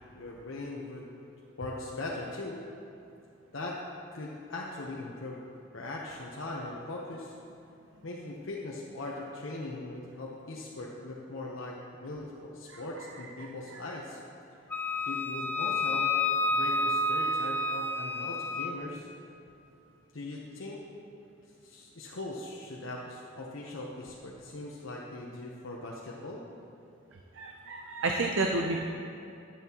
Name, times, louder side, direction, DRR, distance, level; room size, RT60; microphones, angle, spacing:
voice 1, 0.1-1.1 1.6-2.6 3.5-3.8 4.1-5.4 5.7-7.3 8.0-14.2 15.1-16.1 16.5-19.1 20.1-20.8 21.6-26.4, left 2 dB, 90° left, -3 dB, 0.9 m, -40 dB
Wind instrument woodwind instrument, 14.7-18.7, left 2 dB, 10° left, 0.5 m, -29 dB
voice 2, 27.3-28.9, right 2 dB, 80° right, 2 dB, 0.6 m, -30 dB
11.0 x 10.0 x 2.9 m, 2.7 s
head